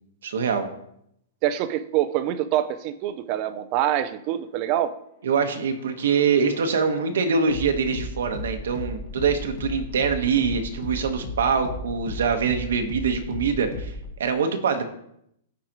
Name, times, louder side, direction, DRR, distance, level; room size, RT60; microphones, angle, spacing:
voice 1, 0.2-0.7 5.2-13.9 14.2-14.8, right 5 dB, 85° right, 6 dB, 1.2 m, -24 dB
voice 2, 1.4-5.0, right 12 dB, 30° right, 13 dB, 0.4 m, -25 dB
sound 1, 5.6-14.1, left 2 dB, 40° left, 1.5 m, -36 dB
14.0 x 4.9 x 3.0 m, 0.75 s
supercardioid pair, 175°, 0 cm